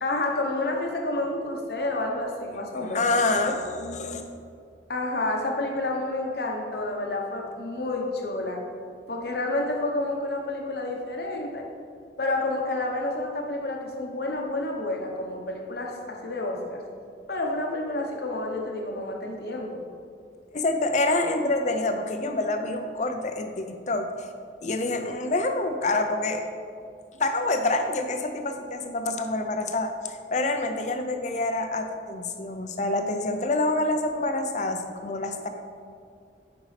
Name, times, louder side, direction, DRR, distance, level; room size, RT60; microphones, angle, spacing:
voice 1, 0.0-3.0 4.9-8.6 9.1-11.7 12.2-16.8 17.3-19.8, left 2 dB, 60° left, 1 dB, 0.9 m, -29 dB
voice 2, 2.8-4.2 20.5-24.3 24.6-26.4 27.2-35.5, left 2 dB, 40° left, 6 dB, 0.5 m, -27 dB
9.0 x 5.2 x 3.3 m, 2.3 s
head